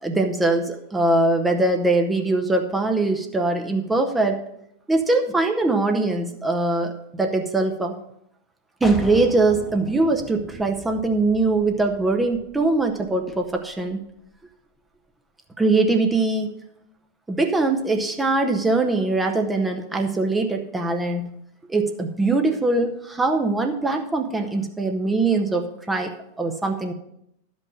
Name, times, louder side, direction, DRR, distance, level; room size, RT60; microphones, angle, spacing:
voice 1, 0.0-4.4 4.9-7.9 8.8-14.0 15.6-16.6 17.3-21.3 21.7-26.1 26.4-26.9, right 2 dB, 10° right, 4 dB, 0.8 m, -22 dB
sound 1, 8.8-14.4, left 1 dB, 10° left, 1.1 m, -39 dB
11.5 x 5.3 x 6.4 m, 0.77 s
figure-of-eight pair, 90°, 0 cm